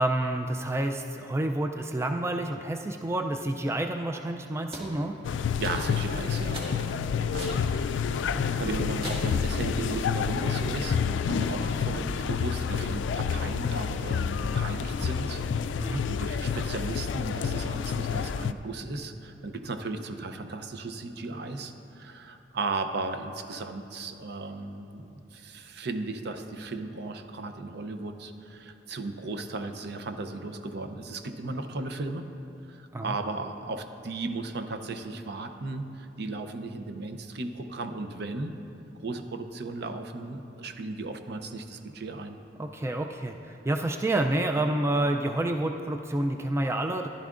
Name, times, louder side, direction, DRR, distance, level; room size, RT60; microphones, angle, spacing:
voice 1, 0.0-5.2 15.8-16.0 32.9-33.1 42.6-47.1, right 1 dB, 15° right, 4 dB, 0.3 m, -28 dB
sound 1, 4.7-4.9 5.6-6.1 6.5-6.8 7.4-7.6 8.1-8.2 9.0-9.4, right 1 dB, 30° right, 1.8 m, -39 dB
sound 2, 5.2-18.5, left 6 dB, 85° left, 0.3 m, -29 dB
voice 2, 5.3-15.4 15.8-32.3 32.7-38.6 39.0-42.4, right 3 dB, 65° right, 8 dB, 0.6 m, -36 dB
14.5 x 11.0 x 2.5 m, 2.8 s
head